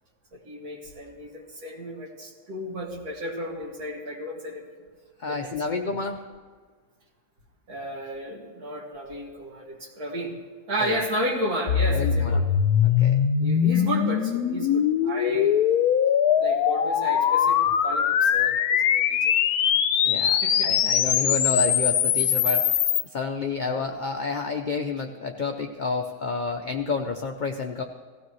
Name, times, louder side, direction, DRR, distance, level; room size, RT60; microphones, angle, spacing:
voice 1, 0.3-4.6 5.3-5.9 7.7-10.4 10.7-12.5 13.4-15.6 16.4-19.3 20.0-20.9 23.7-23.9, equal, 80° right, -2 dB, 2.7 m, -33 dB
voice 2, 5.2-6.3 10.8-11.0 11.9-12.4 12.8-13.2 20.0-22.8 23.1-27.8, left 4 dB, 45° left, 3 dB, 0.6 m, -29 dB
sound 1, 11.7-23.0, left 8 dB, 90° left, 1.2 m, -22 dB
17.5 x 15.5 x 3.1 m, 1.6 s
omnidirectional pair, 1.6 m